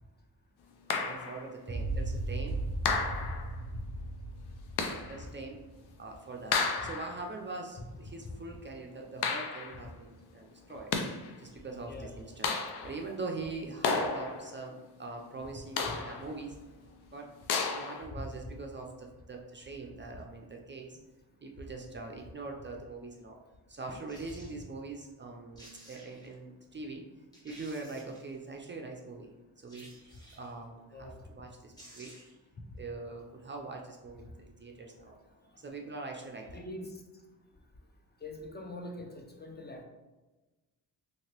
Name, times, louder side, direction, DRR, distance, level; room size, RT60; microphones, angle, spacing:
sound 1, 0.9-1.5 2.8-3.6 4.8-5.2 6.5-7.2 9.2-9.8 10.7-11.3 12.4-13.0 13.8-14.6 15.8-16.3 17.5-18.1, left 5 dB, 80° left, 0.5 m, -32 dB
voice 1, 0.9-2.6 4.9-5.6 6.0-10.9 11.4-12.5 12.8-16.6 17.1-17.3 17.7-21.0 21.4-23.4 23.7-27.0 27.4-29.3 29.6-29.9 30.3-32.2 32.8-35.1 35.6-36.6, right 3 dB, 30° right, 1 dB, 0.4 m, -42 dB
sound 2, 1.7-6.0, right 2 dB, 15° right, 0.8 m, -36 dB
sound 3, 24.1-24.6 25.3-25.4 25.6-26.4 26.9-27.0 27.3-28.4 29.7-30.6 31.4-31.5 31.7-32.5 32.8-32.9, right 1 dB, 10° left, 1.1 m, -54 dB
voice 2, 36.5-37.0 38.2-39.8, left 1 dB, 25° left, 2 dB, 0.5 m, -43 dB
2.9 x 2.9 x 2.9 m, 1.2 s
cardioid pair, 65°, 39 cm